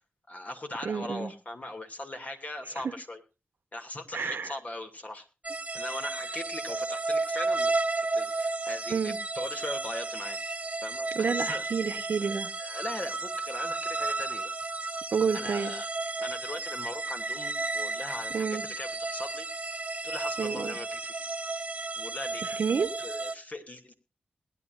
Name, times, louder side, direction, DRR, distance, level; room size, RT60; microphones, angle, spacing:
voice 1, 0.3-3.2 3.7-5.3 5.8-7.7 8.1-10.4 10.8-11.6 12.2-14.5 14.8-15.0 15.3-15.9 16.2-19.5 20.0-21.1 22.0-22.4 23.0-23.9, left 1 dB, 40° left, 5 dB, 2.6 m, -40 dB
voice 2, 0.8-1.3 4.1-4.5 8.9-9.2 11.1-12.5 15.1-15.7 18.3-18.6 20.4-20.8 22.4-22.9, right 6 dB, 75° right, 13 dB, 1.1 m, -29 dB
sound 1, 5.4-23.3, right 3 dB, 40° right, 0.9 m, -33 dB
20.5 x 10.0 x 2.6 m, 0.30 s
cardioid pair, 45°, 4 cm